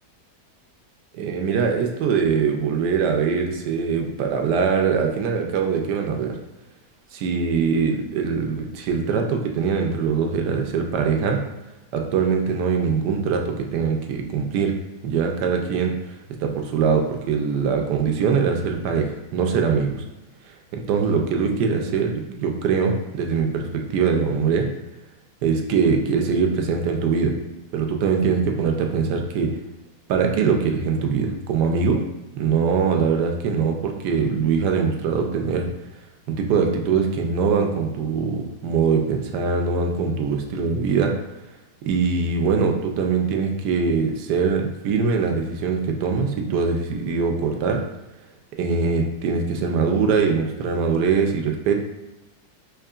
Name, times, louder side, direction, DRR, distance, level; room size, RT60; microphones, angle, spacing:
voice 1, 1.1-6.4 7.1-11.4 11.9-14.7 15.0-16.1 16.4-20.0 20.7-24.7 25.4-27.3 27.7-29.5 30.1-32.0 32.4-35.7 36.3-41.2 41.9-47.8 48.6-51.8, right 5 dB, 75° right, 3 dB, 1.1 m, -22 dB
4.6 x 3.0 x 2.4 m, 1.0 s
omnidirectional pair, 1.9 m